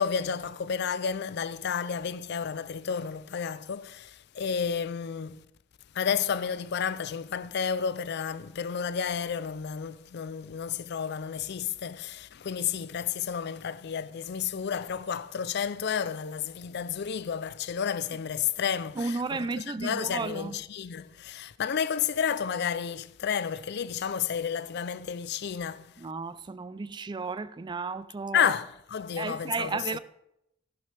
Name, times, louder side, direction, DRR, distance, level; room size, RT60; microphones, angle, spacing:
voice 1, 0.0-5.4 5.9-19.5 19.8-25.9 28.3-29.8, left 7 dB, 55° left, 0.4 m, -31 dB
voice 2, 19.0-20.6 26.0-28.5 29.2-30.0, right 4 dB, 25° right, 0.3 m, -33 dB
14.0 x 11.0 x 3.4 m
head